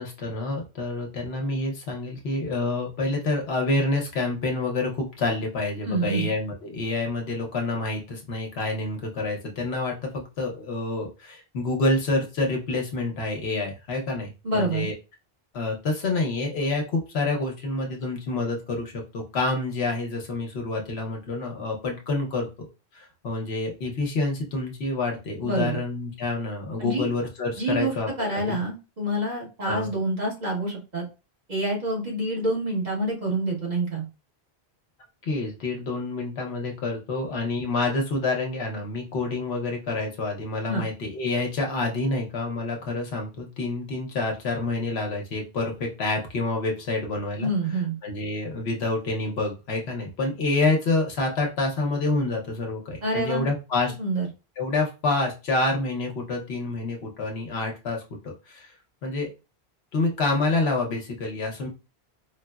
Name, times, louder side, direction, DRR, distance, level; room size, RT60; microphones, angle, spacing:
voice 1, 0.0-14.9 15.5-22.7 22.9-28.6 29.6-29.9 35.2-47.5 48.0-53.9 54.6-58.7 59.0-59.3 59.9-61.7, left 2 dB, 80° left, 1 dB, 1.0 m, -28 dB
voice 2, 5.8-6.3 14.4-14.9 25.4-25.8 26.8-27.1 27.6-31.0 31.5-34.0 40.7-40.8 47.4-48.0 53.0-53.5 54.0-54.3, right 1 dB, 45° right, -3 dB, 1.2 m, -27 dB
4.6 x 2.0 x 2.2 m, 0.30 s
omnidirectional pair, 1.1 m